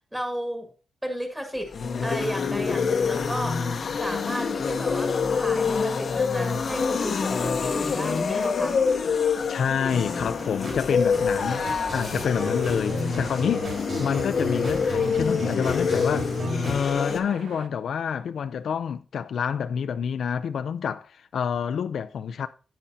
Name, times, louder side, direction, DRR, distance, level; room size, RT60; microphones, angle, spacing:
voice 1, 0.1-0.7 1.0-1.7 2.0-3.7 3.9-8.9, equal, 5° right, 1.8 m, -33 dB
sound 1, 1.6-17.2, left 5 dB, 50° left, 0.8 m, -26 dB
voice 2, 9.5-13.7 14.0-16.3 16.6-22.5, left 7 dB, 75° left, 0.4 m, -28 dB
sound 2, 9.8-16.8, right 3 dB, 45° right, 3.8 m, -37 dB
sound 3, 11.3-17.7, right 7 dB, 85° right, 0.6 m, -44 dB
10.0 x 8.7 x 2.7 m
wide cardioid pair, 145°, 0 cm